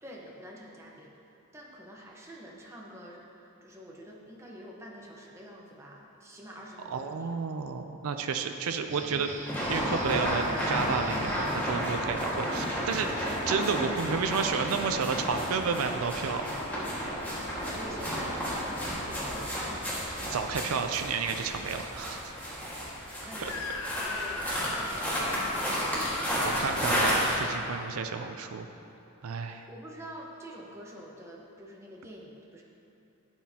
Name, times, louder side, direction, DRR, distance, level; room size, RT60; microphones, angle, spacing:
voice 1, 0.0-1.1 1.5-7.4 17.7-20.0 23.2-27.0 29.4-32.6, right 1 dB, 10° right, -3 dB, 1.0 m, -46 dB
voice 2, 6.9-9.3 9.7-16.6 20.3-22.3 23.4-23.5 26.4-28.7 29.2-29.6, right 5 dB, 70° right, 6 dB, 0.4 m, -31 dB
sound 1, 8.9-11.6, right 1 dB, 35° right, 0.9 m, -40 dB
sound 2, 9.5-27.4, equal, 10° left, 1.7 m, -32 dB
Screaming, 23.4-28.3, left 3 dB, 65° left, 0.7 m, -39 dB
11.5 x 9.2 x 2.8 m, 2.9 s
head